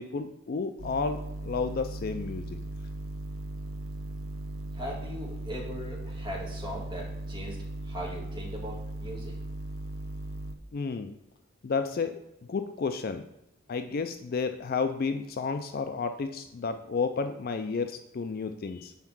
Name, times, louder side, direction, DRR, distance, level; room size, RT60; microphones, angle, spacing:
voice 1, 0.0-2.6 10.7-11.2 11.6-12.2 12.5-13.2 13.7-18.9, left 4 dB, 45° left, 8 dB, 0.3 m, -31 dB
sound 1, 0.8-10.5, right 1 dB, 65° right, 0.6 m, -38 dB
voice 2, 4.7-7.6 7.8-9.3, equal, 20° right, -4 dB, 1.8 m, -39 dB
5.8 x 4.6 x 6.0 m, 0.84 s
head